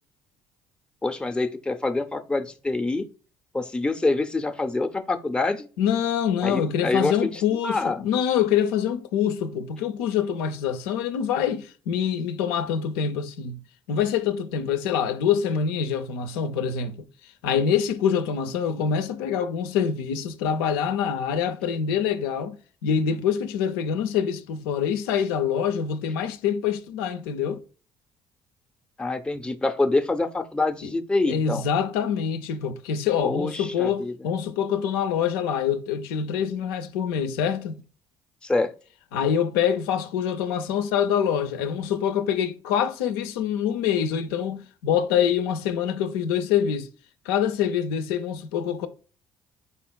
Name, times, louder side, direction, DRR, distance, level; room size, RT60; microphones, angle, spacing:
voice 1, 1.0-3.1 3.5-5.7 6.4-8.1 29.0-31.6 33.2-34.1 38.4-38.7, left 2 dB, 10° left, 0.5 m, -26 dB
voice 2, 5.8-13.6 13.9-17.0 17.4-27.6 30.8-30.9 31.3-37.8 39.1-46.9 47.3-48.9, left 8 dB, 80° left, 0.4 m, -25 dB
4.2 x 3.8 x 2.2 m
hypercardioid pair, 55°, 12 cm